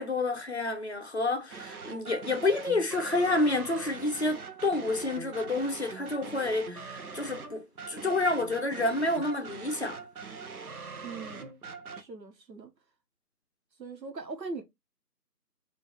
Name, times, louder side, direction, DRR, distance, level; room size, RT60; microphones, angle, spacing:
voice 1, 0.0-10.0, left 2 dB, 45° left, 0.6 m, -29 dB
sound 1, 1.5-12.0, right 4 dB, 60° right, 0.8 m, -42 dB
voice 2, 11.0-11.5 11.9-12.7 13.8-14.6, right 3 dB, 85° right, 1.2 m, -40 dB
3.1 x 2.6 x 3.3 m
figure-of-eight pair, 165°, 49 cm